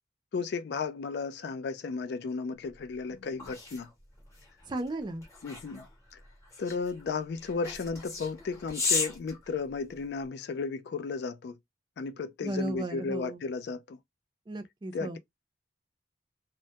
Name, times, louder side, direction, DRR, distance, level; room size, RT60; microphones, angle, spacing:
voice 1, 0.3-3.9 5.4-5.9 6.1-6.2 6.6-11.5 12.0-14.0 14.9-15.2, left 4 dB, 60° left, 0.3 m, -34 dB
sound 1, 2.7-10.2, left 4 dB, 15° left, 0.8 m, -36 dB
voice 2, 4.7-5.2 12.4-13.4 14.5-15.2, right 2 dB, 25° right, 0.3 m, -35 dB
2.2 x 2.0 x 2.7 m
head